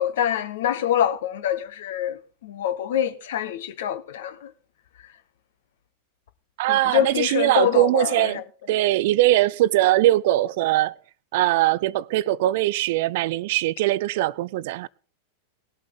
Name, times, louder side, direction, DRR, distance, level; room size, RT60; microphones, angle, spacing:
voice 1, 0.0-4.5 6.7-8.4, left 10 dB, 55° left, 1.2 m, -25 dB
voice 2, 6.6-8.4 8.7-10.9 11.3-14.9, right 15 dB, 50° right, 0.5 m, -21 dB
19.5 x 8.1 x 3.8 m
figure-of-eight pair, 90°, 0 cm